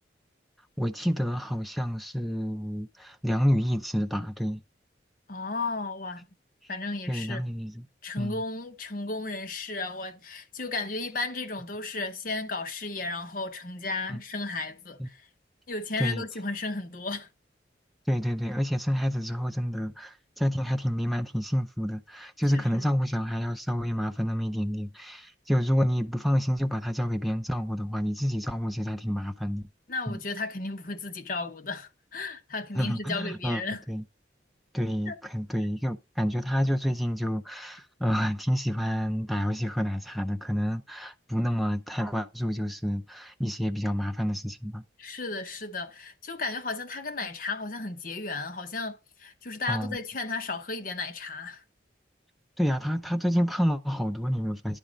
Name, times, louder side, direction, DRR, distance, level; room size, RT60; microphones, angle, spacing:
voice 1, 0.8-4.6 7.1-7.9 8.2-8.4 14.1-14.2 15.0-15.1 16.0-16.2 18.1-29.6 30.1-30.2 32.7-33.6 33.9-34.0 34.7-44.8 49.7-50.0 52.6-54.8, equal, ahead, 0.4 m, -28 dB
voice 2, 5.3-6.3 6.7-7.4 8.0-15.3 15.7-17.3 22.5-22.9 29.9-33.8 35.1-35.2 45.0-51.6, left 3 dB, 45° left, 0.8 m, -34 dB
10.0 x 4.1 x 5.0 m
head